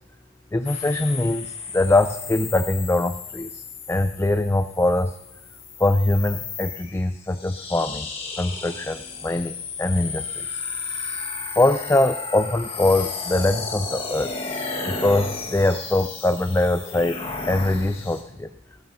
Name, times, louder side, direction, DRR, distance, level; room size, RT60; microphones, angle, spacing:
voice 1, 0.5-5.2 5.8-8.1 8.4-10.6 11.6-14.3 14.9-18.5, left 2 dB, 15° left, 9 dB, 0.4 m, -23 dB
sound 1, 0.6-18.2, left 4 dB, 30° left, 1.6 m, -34 dB
20.0 x 13.0 x 2.8 m, 0.95 s
head